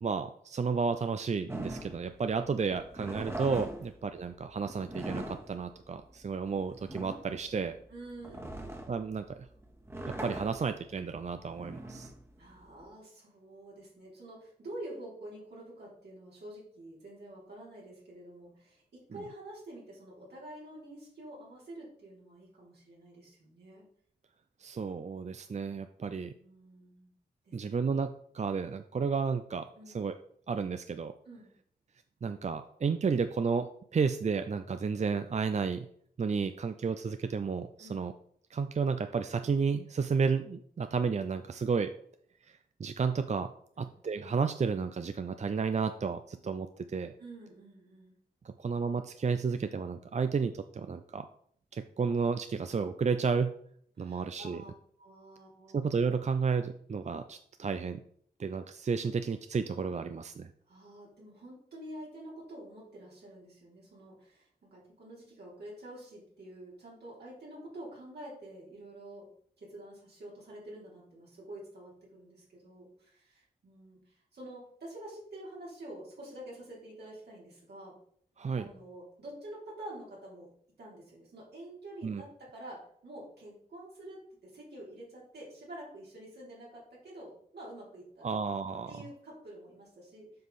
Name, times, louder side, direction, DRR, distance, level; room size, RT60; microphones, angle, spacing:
voice 1, 0.0-7.8 8.9-9.5 10.1-12.1 24.6-26.3 27.5-29.7 29.9-30.1 30.5-31.1 32.2-35.9 36.2-38.1 38.5-41.9 42.5-43.5 43.8-47.1 48.4-51.3 51.7-53.5 54.0-54.6 55.7-58.0 58.4-60.5 78.4-78.7 82.0-82.2 88.2-88.9, right 5 dB, 45° right, 9 dB, 0.5 m, -32 dB
sound 1, 1.5-12.9, right 1 dB, 15° right, 1.4 m, -42 dB
voice 2, 7.9-8.8 12.3-23.9 26.0-27.1 27.4-27.6 29.8-30.0 31.3-31.5 37.8-38.0 43.8-43.9 47.2-48.2 53.9-54.7 55.0-55.8 60.7-69.3 69.6-77.9 78.5-80.5 80.8-88.3 88.9-90.3, right 1 dB, 80° right, -5 dB, 3.6 m, -48 dB
7.6 x 5.4 x 4.2 m, 0.63 s
cardioid pair, 45°, 17 cm